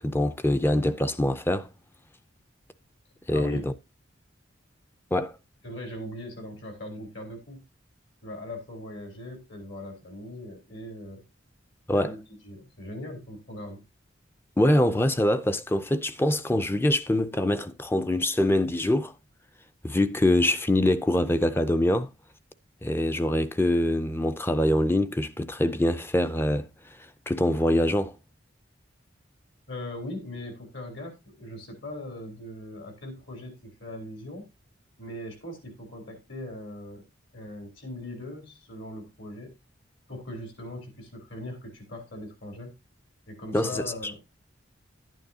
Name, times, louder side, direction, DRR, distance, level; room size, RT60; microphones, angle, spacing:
voice 1, 0.0-1.7 3.3-3.7 5.1-5.4 11.9-12.1 14.6-19.1 19.8-22.1 22.8-26.7 27.3-28.2 43.5-44.1, left 1 dB, 10° left, 0.4 m, -24 dB
voice 2, 3.3-3.7 5.6-7.6 8.2-11.2 11.9-12.2 12.4-13.8 29.7-34.5 35.0-37.1 37.3-39.5 40.1-42.7 43.3-44.2, left 1 dB, 65° left, 3.5 m, -40 dB
11.5 x 9.1 x 2.7 m
head